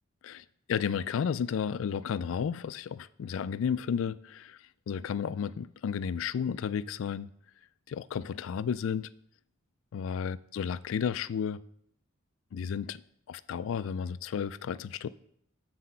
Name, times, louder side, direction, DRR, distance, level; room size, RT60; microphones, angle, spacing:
voice 1, 0.2-7.3 7.9-9.1 9.9-11.6 12.5-13.0 13.3-15.1, left 7 dB, 75° left, 0.3 m, -33 dB
7.4 x 6.0 x 5.6 m
head